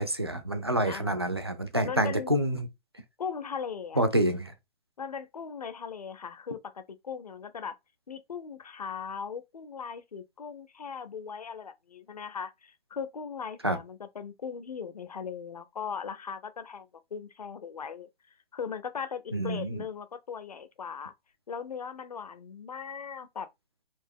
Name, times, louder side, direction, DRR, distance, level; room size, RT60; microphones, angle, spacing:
voice 1, 0.0-2.7 4.0-4.5 13.6-13.8 19.3-19.8, right 1 dB, 25° right, 0.3 m, -27 dB
voice 2, 0.8-1.4 1.8-2.3 3.2-4.0 5.0-7.8 8.1-18.1 18.5-21.1 21.5-23.5, left 6 dB, 35° left, 0.5 m, -39 dB
4.4 x 2.8 x 3.5 m
hypercardioid pair, 165°, 33 cm